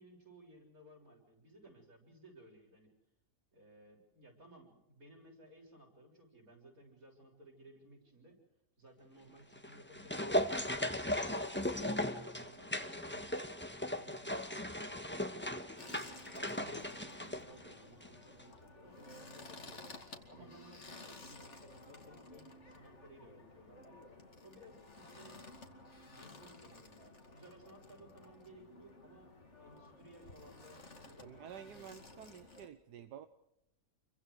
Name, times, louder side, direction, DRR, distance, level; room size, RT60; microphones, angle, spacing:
voice 1, 0.0-2.9 3.5-8.4 8.8-10.5 12.2-13.4 13.9-15.9 16.3-19.9 20.3-24.0 24.4-25.5 26.1-32.2, right 1 dB, 60° right, 1 dB, 7.6 m, -59 dB
sound 1, 9.5-18.1 18.4-18.5, left 1 dB, 5° left, 1.5 m, -37 dB
sound 2, 15.8-32.7, left 2 dB, 45° left, 2.7 m, -54 dB
voice 2, 31.2-33.3, right 9 dB, 85° right, 9 dB, 1.6 m, -51 dB
28.5 x 24.0 x 4.9 m, 0.84 s
omnidirectional pair, 1.7 m